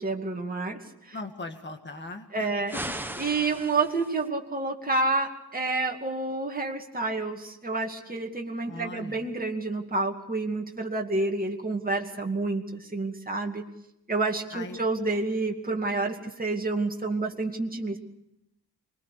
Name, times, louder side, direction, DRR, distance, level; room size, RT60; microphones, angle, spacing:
voice 1, 0.0-1.2 2.3-2.7 3.2-13.7 14.1-18.0, right 3 dB, 20° right, 1 dB, 2.4 m, -29 dB
voice 2, 1.1-3.0 8.7-9.2 14.5-14.8, left 2 dB, 30° left, 5 dB, 1.9 m, -39 dB
sound 1, 2.7-4.3, right 1 dB, 5° right, 1.1 m, -37 dB
25.5 x 21.5 x 6.7 m, 0.84 s
wide cardioid pair, 155°, 39 cm